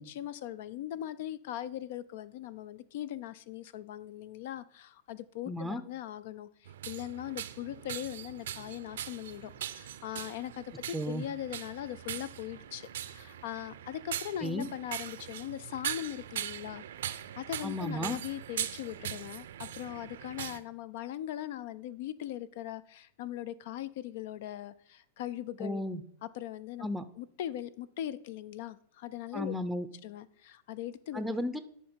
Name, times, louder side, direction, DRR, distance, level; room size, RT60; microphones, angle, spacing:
voice 1, 0.0-16.8 17.4-25.8 26.2-26.9 27.2-29.5 30.0-31.2, left 12 dB, 65° left, 17 dB, 0.3 m, -40 dB
voice 2, 5.5-5.8 10.9-11.2 14.4-14.7 17.6-18.2 25.6-26.0 26.8-27.0 29.3-29.9 31.1-31.6, left 1 dB, 5° right, 11 dB, 0.5 m, -34 dB
sound 1, 6.7-20.6, right 11 dB, 75° right, 0.5 m, -41 dB
10.0 x 3.7 x 4.4 m, 0.63 s
hypercardioid pair, 115°, 0 cm